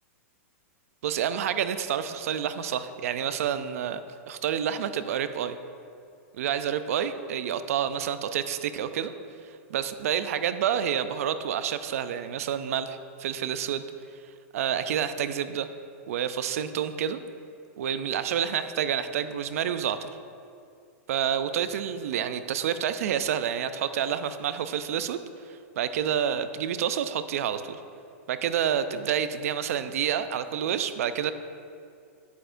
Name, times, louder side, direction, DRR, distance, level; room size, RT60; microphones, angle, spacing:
voice 1, 1.0-4.0 4.3-5.6 6.3-9.1 9.7-13.8 14.5-15.7 16.1-17.2 17.8-20.1 21.1-25.2 25.5-27.8 28.3-31.3, right 9 dB, 75° right, 11 dB, 0.4 m, -28 dB
10.0 x 8.0 x 2.6 m, 2.4 s
supercardioid pair, 150°, 8 cm